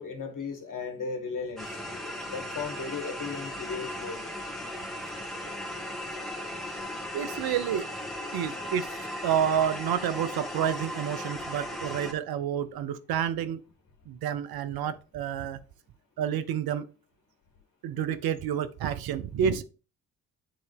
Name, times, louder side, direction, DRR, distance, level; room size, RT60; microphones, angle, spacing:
voice 1, 0.0-1.7 2.2-4.3, left 5 dB, 45° left, 2.0 m, -36 dB
sound 1, 1.6-12.1, left 1 dB, ahead, 2.2 m, -37 dB
voice 2, 7.1-7.9 8.3-13.6 14.1-15.6 16.2-16.8 17.8-19.6, right 9 dB, 55° right, 0.7 m, -29 dB
9.0 x 4.0 x 3.4 m
hypercardioid pair, 45°, 43 cm